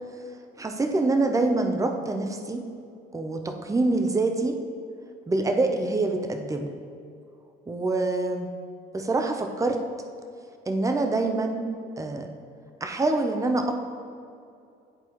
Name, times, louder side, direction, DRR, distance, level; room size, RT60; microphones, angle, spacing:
voice 1, 0.6-2.7 3.1-4.6 5.3-6.7 7.7-8.5 8.9-9.8 10.7-11.7 12.0-12.3 12.8-13.7, right 2 dB, 15° right, 5 dB, 0.6 m, -25 dB
10.0 x 4.2 x 3.0 m, 2.4 s
cardioid pair, 90°, 20 cm